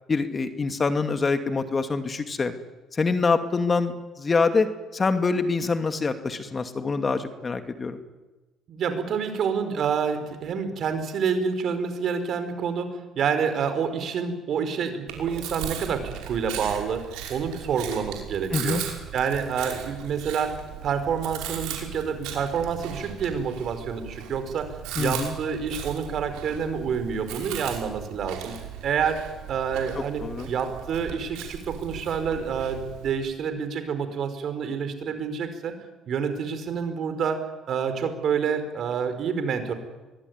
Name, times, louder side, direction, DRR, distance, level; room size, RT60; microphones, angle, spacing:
voice 1, 0.1-2.5 2.9-4.7 4.9-8.0 18.5-18.8 25.0-25.3 30.2-30.5, left 4 dB, 35° left, 8 dB, 2.5 m, -25 dB
voice 2, 8.7-17.0 17.3-18.8 19.1-20.5 20.8-24.7 25.0-28.5 28.8-29.2 29.5-35.8 36.1-37.4 37.7-39.7, right 6 dB, 60° right, 9 dB, 4.8 m, -28 dB
Chewing mastication, 15.1-33.1, right 9 dB, 80° right, 5.5 m, -38 dB
23.0 x 21.5 x 9.7 m, 1.1 s
supercardioid pair, 75°, 0 cm